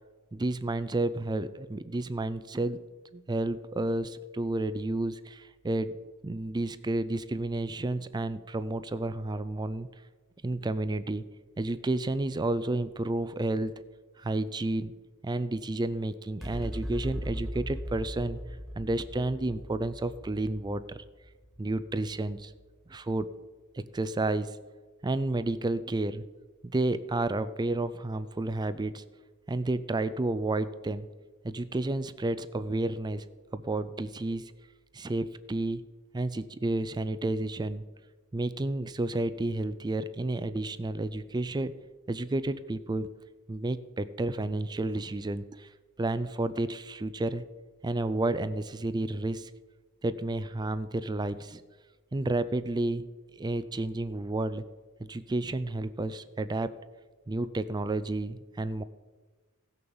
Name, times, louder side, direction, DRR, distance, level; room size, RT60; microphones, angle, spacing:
voice 1, 0.3-2.8 3.1-6.0 6.2-9.9 10.4-11.2 11.6-13.7 14.2-14.9 15.2-18.4 18.8-21.0 21.6-22.5 22.9-23.3 23.7-24.6 25.0-26.2 26.7-29.0 29.5-31.1 31.4-33.2 33.5-34.5 34.9-35.8 36.1-37.8 38.3-41.8 42.1-43.1 43.5-45.7 46.0-47.4 47.8-49.5 50.0-51.6 52.1-53.1 53.4-54.6 55.0-56.8 57.3-58.8, right 2 dB, 20° right, 13 dB, 0.4 m, -31 dB
sound 1, 16.4-23.1, equal, ahead, 1.6 m, -39 dB
16.5 x 6.8 x 7.1 m, 1.3 s
head